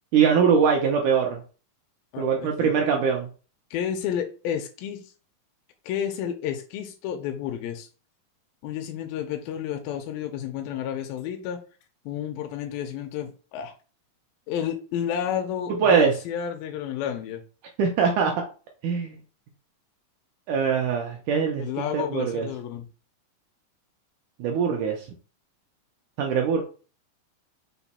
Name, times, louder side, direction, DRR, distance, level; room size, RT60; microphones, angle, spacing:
voice 1, 0.1-1.4 2.2-3.3 15.7-16.1 17.8-18.3 18.8-19.2 20.5-22.5 24.4-25.1 26.2-26.6, right 6 dB, 80° right, 1 dB, 1.8 m, -22 dB
voice 2, 2.1-2.7 3.7-5.1 5.9-7.9 8.6-11.6 12.1-13.7 14.5-17.4 21.6-22.9, left 9 dB, 85° left, 4 dB, 2.4 m, -31 dB
5.9 x 2.2 x 4.1 m, 0.36 s
omnidirectional pair, 4.2 m